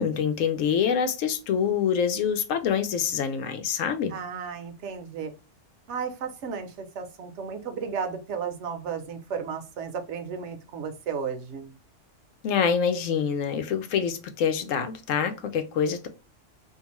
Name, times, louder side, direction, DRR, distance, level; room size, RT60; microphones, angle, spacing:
voice 1, 0.0-4.1 12.4-16.1, left 7 dB, 90° left, 1.0 m, -26 dB
voice 2, 4.1-5.3 5.9-11.7, right 6 dB, 70° right, 0.9 m, -34 dB
2.6 x 2.3 x 2.8 m
omnidirectional pair, 1.3 m